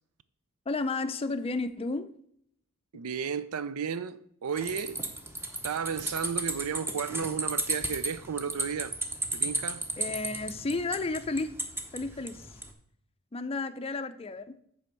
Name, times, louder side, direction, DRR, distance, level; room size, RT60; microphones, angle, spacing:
voice 1, 0.7-2.1 10.0-11.6 11.9-12.5 13.3-14.6, left 3 dB, 25° left, 0.5 m, -32 dB
voice 2, 2.9-5.0 5.6-9.0 9.3-9.8, right 6 dB, 90° right, 0.5 m, -33 dB
sound 1, 4.6-12.7, right 1 dB, 10° right, 0.9 m, -34 dB
9.6 x 3.5 x 6.7 m
head